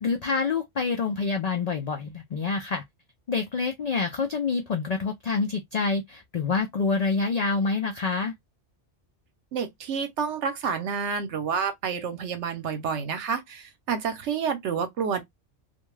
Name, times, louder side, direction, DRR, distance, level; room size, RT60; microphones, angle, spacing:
voice 1, 0.0-2.8 3.3-8.3, left 4 dB, 70° left, 0.4 m, -27 dB
voice 2, 9.5-15.2, right 6 dB, 75° right, 1.0 m, -29 dB
2.4 x 2.2 x 3.1 m
omnidirectional pair, 1.2 m